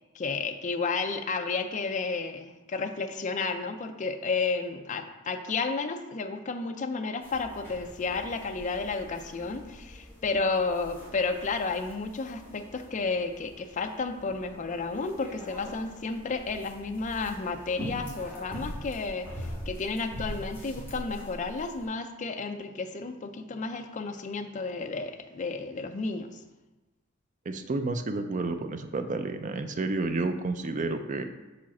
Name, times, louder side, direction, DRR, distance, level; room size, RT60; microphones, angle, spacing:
voice 1, 0.0-26.4, left 4 dB, 35° left, 6 dB, 0.4 m, -32 dB
sound 1, 7.2-21.9, equal, 10° left, 2.1 m, -43 dB
voice 2, 27.5-31.2, right 3 dB, 35° right, 7 dB, 0.4 m, -30 dB
4.9 x 4.1 x 5.9 m, 1.1 s
head